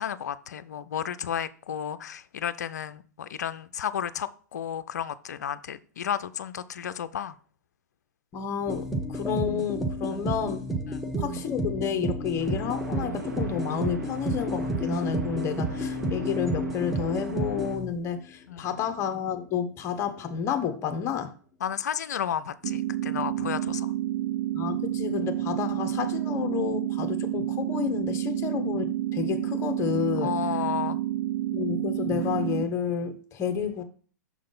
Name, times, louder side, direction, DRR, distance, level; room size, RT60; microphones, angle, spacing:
voice 1, 0.0-7.4 10.1-10.2 10.9-11.0 18.5-18.7 21.6-23.9 30.2-31.0, left 9 dB, 65° left, 0.5 m, -32 dB
voice 2, 8.3-10.7 11.1-21.3 24.5-30.3 31.5-33.8, left 7 dB, 25° left, 0.9 m, -30 dB
sound 1, 8.7-18.2, right 1 dB, ahead, 0.9 m, -31 dB
sound 2, 12.4-17.8, right 3 dB, 75° right, 1.5 m, -41 dB
sound 3, 22.6-32.6, right 13 dB, 55° right, 0.4 m, -29 dB
6.1 x 3.8 x 5.4 m
figure-of-eight pair, 110°, 10 cm